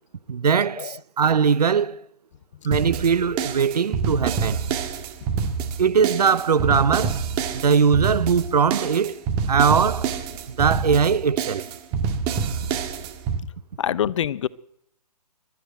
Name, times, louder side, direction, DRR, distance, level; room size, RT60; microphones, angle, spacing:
voice 1, 0.3-2.0 2.6-4.7 5.8-7.2 7.5-9.2 9.5-10.1 10.5-11.6, right 6 dB, 70° right, 0.9 m, -20 dB
sound 1, 2.7-13.4, right 6 dB, 25° right, 1.7 m, -27 dB
voice 2, 13.8-14.5, left 10 dB, 45° left, 0.7 m, -25 dB
23.5 x 12.0 x 9.2 m
figure-of-eight pair, 135°, 21 cm